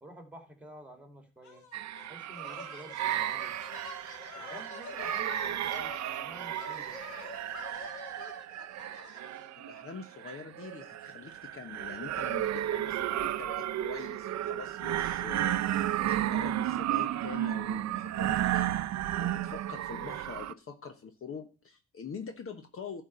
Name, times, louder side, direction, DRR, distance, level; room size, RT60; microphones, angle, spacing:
voice 1, 0.0-1.6 2.0-3.7 4.3-7.0, right 1 dB, 5° right, 4 dB, 2.5 m, -50 dB
sound 1, 1.4-9.5, left 4 dB, 75° left, 2.5 m, -47 dB
sound 2, 1.7-20.5, right 12 dB, 65° right, 0.6 m, -33 dB
voice 2, 9.6-15.7 16.0-18.8 19.2-23.0, left 6 dB, 45° left, 7 dB, 1.2 m, -44 dB
12.0 x 4.6 x 6.7 m, 0.35 s
cardioid pair, 90°, 30 cm